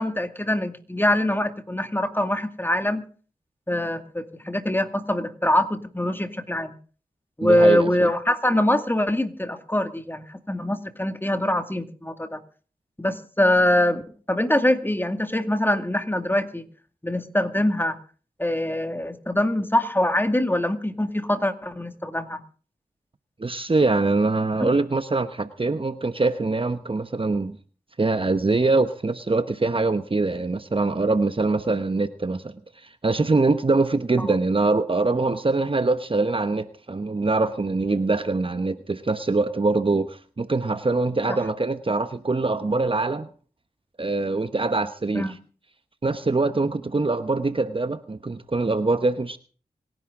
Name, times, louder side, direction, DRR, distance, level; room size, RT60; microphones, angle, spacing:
voice 1, 0.0-3.0 3.7-6.7 7.4-12.4 13.0-14.0 14.3-16.6 17.0-18.0 18.4-22.4 24.6-24.7 41.3-41.4 45.1-45.3, left 1 dB, 15° left, 8 dB, 2.2 m, -23 dB
voice 2, 7.4-8.1 23.4-27.6 28.0-43.3 44.0-45.3 46.0-49.4, right 3 dB, 35° right, 11 dB, 1.1 m, -23 dB
26.0 x 11.0 x 3.8 m, 0.41 s
cardioid pair, 40°, 15 cm